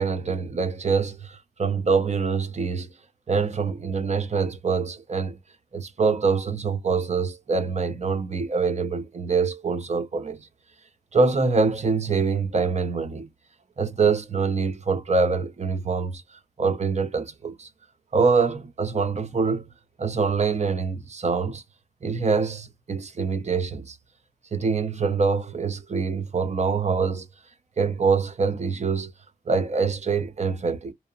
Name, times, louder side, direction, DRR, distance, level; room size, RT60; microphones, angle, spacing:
voice 1, 0.0-2.9 3.3-5.4 5.7-10.5 11.1-13.3 13.8-17.7 18.1-19.6 20.0-21.6 22.0-24.0 24.5-27.3 27.8-29.1 29.5-30.9, right 4 dB, 45° right, 0.6 m, -25 dB
2.8 x 2.0 x 2.5 m
wide cardioid pair, 75°, 16 cm